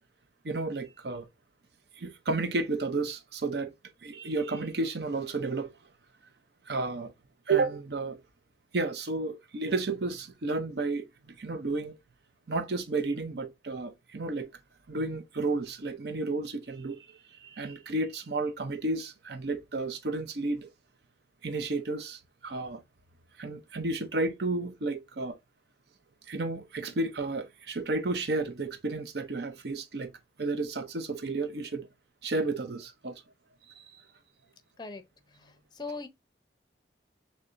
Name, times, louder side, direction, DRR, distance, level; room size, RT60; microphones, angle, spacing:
voice 1, 0.4-1.3 2.0-3.7 4.0-5.7 6.7-7.1 7.5-8.2 8.7-11.1 11.4-11.9 12.5-14.5 14.9-20.7 21.4-22.8 23.4-25.4 26.3-30.1 30.4-31.9 32.2-33.2 33.8-33.9, right 3 dB, 60° right, 0.6 m, -32 dB
voice 2, 35.3-36.1, left 3 dB, 25° left, 0.6 m, -40 dB
6.5 x 2.2 x 2.5 m
head